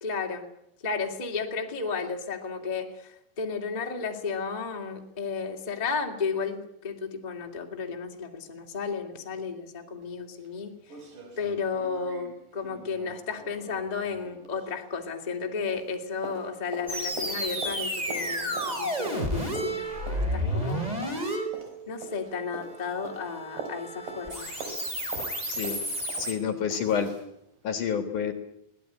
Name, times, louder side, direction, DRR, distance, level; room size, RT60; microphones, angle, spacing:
voice 1, 0.0-0.5 0.8-10.8 11.4-20.9 21.9-24.5, left 5 dB, 15° left, 2 dB, 1.6 m, -33 dB
sound 1, 10.0-10.1 10.4-10.5 10.9-15.4 15.7-27.3 27.7-27.8, right 4 dB, 50° right, 4.9 m, -44 dB
sound 2, 16.9-26.3, equal, 10° right, 3.6 m, -32 dB
voice 2, 25.5-25.8 26.2-27.1 27.6-28.3, left 7 dB, 55° left, 7 dB, 2.7 m, -28 dB
22.0 x 18.0 x 10.0 m, 0.79 s
omnidirectional pair, 4.9 m